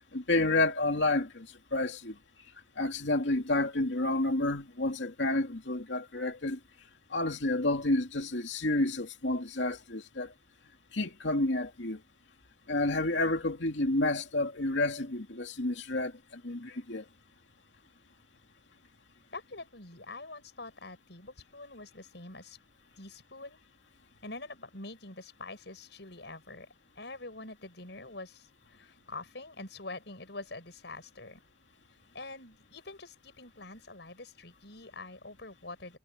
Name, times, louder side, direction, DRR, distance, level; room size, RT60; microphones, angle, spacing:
voice 1, 0.1-2.2 2.8-6.6 7.1-10.3 10.9-12.0 12.7-17.0, left 2 dB, 85° left, 2.6 m, -30 dB
voice 2, 19.3-22.6 23.0-23.6 24.2-26.7 27.0-31.4 32.1-36.0, left 2 dB, 70° left, 5.7 m, -45 dB
head